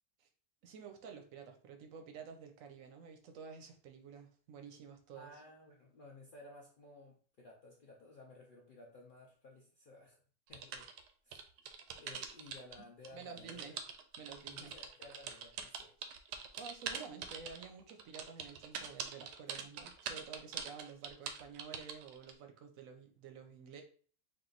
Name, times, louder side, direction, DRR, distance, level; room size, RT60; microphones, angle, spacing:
voice 1, 0.6-5.3 13.1-13.7 14.2-14.7 16.6-23.8, right 6 dB, 65° right, 5 dB, 1.0 m, -51 dB
voice 2, 5.1-10.2 10.5-10.9 11.2-11.4 11.7-13.8 14.5-15.9, left 2 dB, 80° left, -2 dB, 0.4 m, -56 dB
sound 1, 10.5-12.8 13.0-22.3, right 7 dB, 80° right, 1.2 m, -43 dB
3.7 x 2.5 x 3.8 m, 0.43 s
omnidirectional pair, 1.8 m